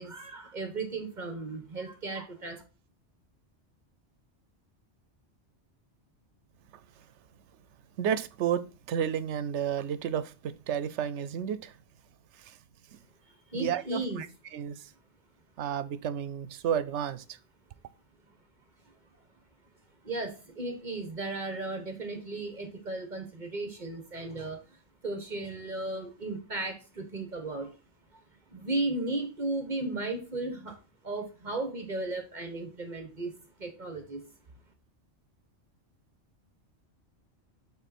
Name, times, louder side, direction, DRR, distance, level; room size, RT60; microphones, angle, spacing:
voice 1, 0.0-2.6 13.5-14.2 20.0-24.6 25.0-27.7 28.5-30.8 31.0-33.3 33.6-34.2, right 2 dB, 45° right, 1.3 m, -35 dB
voice 2, 8.0-11.8 12.4-12.6 12.9-13.0 13.5-14.3 14.5-14.9 15.6-17.4, right 9 dB, 80° right, 0.9 m, -32 dB
8.3 x 4.0 x 4.2 m
omnidirectional pair, 1.2 m